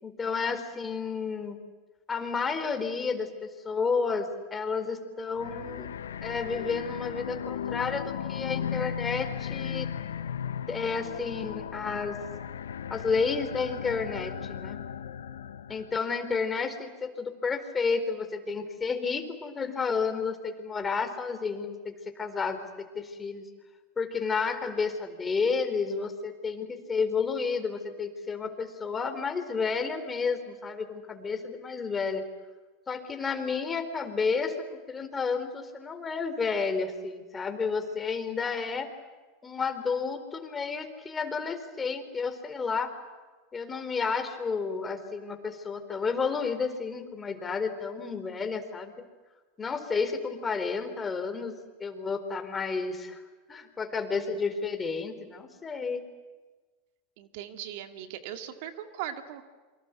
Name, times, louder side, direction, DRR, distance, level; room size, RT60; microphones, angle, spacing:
voice 1, 0.0-1.6 2.1-5.9 6.2-9.9 10.7-12.2 12.9-14.8 15.7-23.4 24.0-32.2 32.9-38.9 39.4-42.9 43.5-49.1 49.6-51.5 51.8-53.2 53.5-56.0, left 5 dB, 20° left, 7 dB, 4.1 m, -31 dB
sound 1, 5.3-16.0, left 8 dB, 85° left, 1.1 m, -36 dB
voice 2, 57.2-59.4, right 11 dB, 65° right, 7 dB, 2.1 m, -39 dB
28.0 x 24.0 x 8.3 m, 1.3 s
hypercardioid pair, 90°, 0 cm